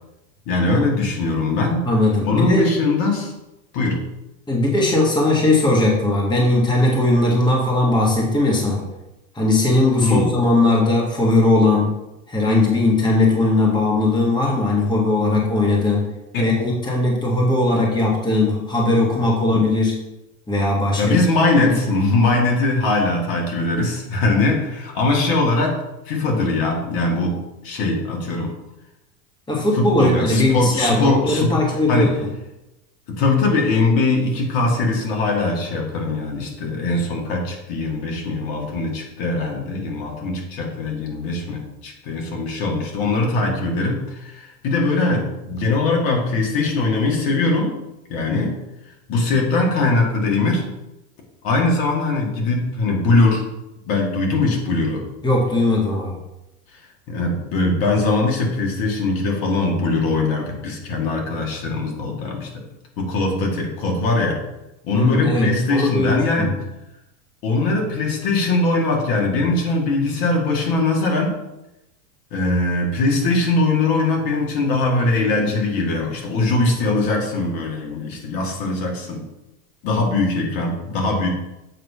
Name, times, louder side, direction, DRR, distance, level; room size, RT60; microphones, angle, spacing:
voice 1, 0.5-1.9 2.2-3.3 3.7-4.0 10.0-10.3 16.3-16.5 17.7-17.8 19.5-19.6 21.0-25.8 26.1-27.4 27.6-28.5 29.7-31.6 31.9-32.1 33.1-47.7 48.1-48.6 49.1-50.6 51.4-53.4 53.9-55.0 57.1-62.5 63.0-64.4 64.8-66.5 67.4-71.4 72.3-79.2 79.8-81.3, left 2 dB, 50° left, 0 dB, 2.0 m, -21 dB
voice 2, 1.8-2.6 4.5-8.8 9.3-12.0 12.3-16.0 16.4-19.9 20.5-21.1 21.7-21.8 29.5-32.1 55.2-56.2 64.9-66.5, left 2 dB, 10° left, -2 dB, 1.5 m, -19 dB
7.7 x 3.2 x 5.5 m, 0.94 s
hypercardioid pair, 110°, 44 cm